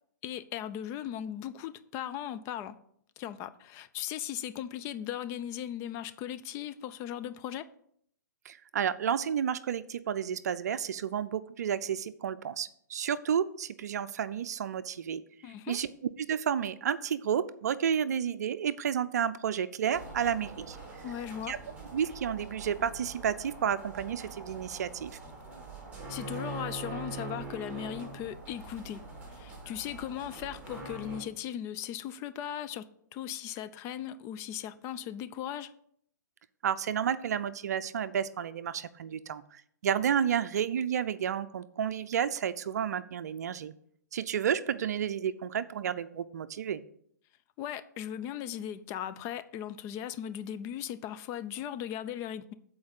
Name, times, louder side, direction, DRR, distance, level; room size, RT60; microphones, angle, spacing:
voice 1, 0.2-2.8 3.2-7.7 15.4-15.8 21.0-21.6 26.1-29.0 29.3-35.7 47.6-52.5, left 10 dB, 30° left, 0.5 m, -38 dB
voice 2, 8.5-15.2 15.7-15.9 16.3-20.8 21.5-21.6 21.9-25.2 36.6-43.7 44.1-46.8, right 8 dB, 60° right, 0.5 m, -31 dB
sound 1, 19.9-31.2, right 3 dB, 10° right, 3.3 m, -43 dB
8.6 x 4.6 x 7.2 m
hypercardioid pair, 130°, 10 cm